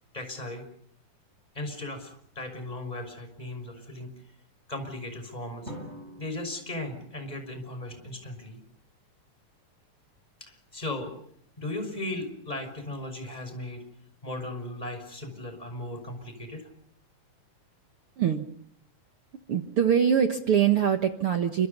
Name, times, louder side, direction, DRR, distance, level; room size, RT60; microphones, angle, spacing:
voice 1, 0.1-0.7 1.5-4.1 4.7-5.7 6.2-8.6 10.4-11.1 11.6-13.8 14.2-16.7, left 1 dB, 10° left, 7 dB, 5.7 m, -37 dB
Drum, 5.7-7.8, equal, 15° right, 7.9 m, -45 dB
voice 2, 18.2-18.5 19.5-21.7, right 8 dB, 55° right, 6 dB, 1.8 m, -23 dB
30.0 x 26.0 x 5.5 m, 0.63 s
omnidirectional pair, 3.9 m